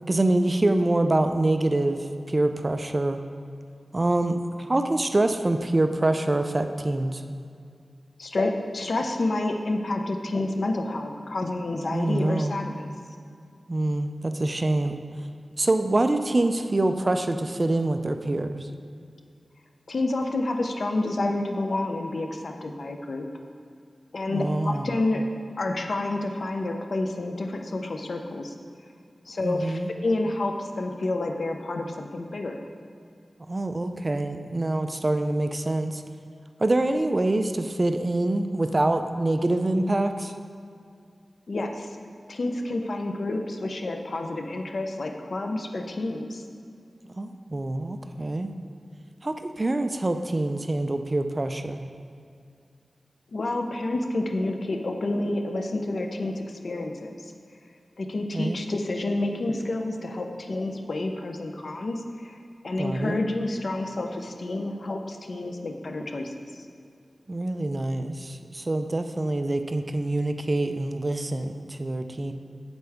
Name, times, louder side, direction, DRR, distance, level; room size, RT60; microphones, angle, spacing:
voice 1, 0.1-3.2 3.9-7.2 11.9-12.6 13.7-15.0 15.6-18.7 24.3-25.0 29.4-29.9 33.5-36.0 36.6-40.3 47.2-48.5 49.2-51.8 58.3-58.6 62.8-63.2 67.3-72.3, right 2 dB, 35° right, 7 dB, 0.4 m, -25 dB
voice 2, 8.2-12.9 19.9-23.2 24.1-25.3 25.6-28.5 29.3-32.6 41.5-42.0 42.3-46.4 53.3-57.2 58.0-62.3 62.6-66.7, left 2 dB, 70° left, 4 dB, 0.7 m, -29 dB
8.0 x 7.7 x 3.5 m, 2.3 s
wide cardioid pair, 75°, 0 cm